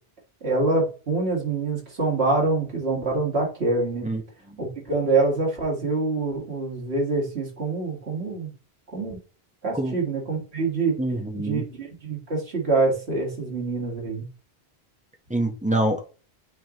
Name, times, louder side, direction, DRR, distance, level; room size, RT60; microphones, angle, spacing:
voice 1, 0.4-4.1 4.6-8.5 8.9-9.2 9.6-11.0 11.4-14.3, right 3 dB, 90° right, 2.2 m, -25 dB
voice 2, 11.0-11.7 15.3-16.0, right 1 dB, 10° right, 0.9 m, -25 dB
9.0 x 3.8 x 3.0 m
omnidirectional pair, 1.0 m